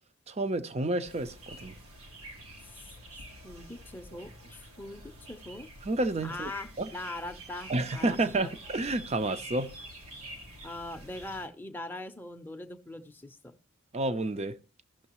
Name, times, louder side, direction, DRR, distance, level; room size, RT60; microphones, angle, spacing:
voice 1, 0.3-1.8 5.8-6.5 6.8-6.9 7.7-9.7 13.9-14.6, right 2 dB, 30° right, 0.5 m, -30 dB
sound 1, 1.0-11.5, right 1 dB, 90° right, 1.4 m, -48 dB
voice 2, 3.1-5.7 6.2-8.5 10.6-13.5, left 2 dB, 10° left, 0.6 m, -42 dB
15.0 x 6.3 x 3.0 m
head